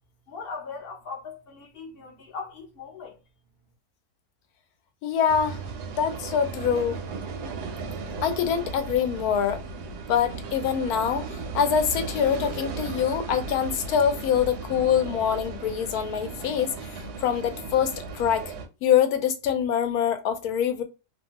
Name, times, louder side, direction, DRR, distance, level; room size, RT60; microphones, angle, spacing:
voice 1, 0.3-3.2, left 4 dB, 55° left, 0.7 m, -39 dB
voice 2, 5.0-5.6 6.0-7.0 8.2-9.6 10.1-18.5 18.8-20.8, left 8 dB, 80° left, 1.1 m, -25 dB
sound 1, 5.3-18.7, right 4 dB, 85° right, 1.2 m, -36 dB
2.9 x 2.2 x 2.8 m
omnidirectional pair, 1.7 m